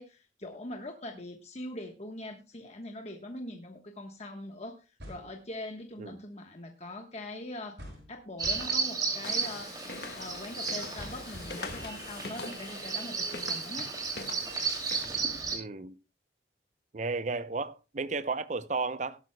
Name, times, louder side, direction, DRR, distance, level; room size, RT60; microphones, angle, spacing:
voice 1, 0.0-4.8 5.1-7.8 8.1-13.9, left 1 dB, 40° left, 1.2 m, -42 dB
sound 1, 5.0-5.4 7.8-8.2 8.4-8.8 11.0-12.1, equal, 70° right, 6.5 m, -46 dB
Bird vocalization bird call bird song, 8.4-15.6, right 4 dB, 20° right, 2.6 m, -34 dB
sound 2, 9.2-15.1, left 3 dB, 60° left, 1.6 m, -43 dB
voice 2, 15.5-16.0 16.9-19.2, right 3 dB, 45° right, 0.6 m, -33 dB
17.5 x 12.0 x 2.2 m
head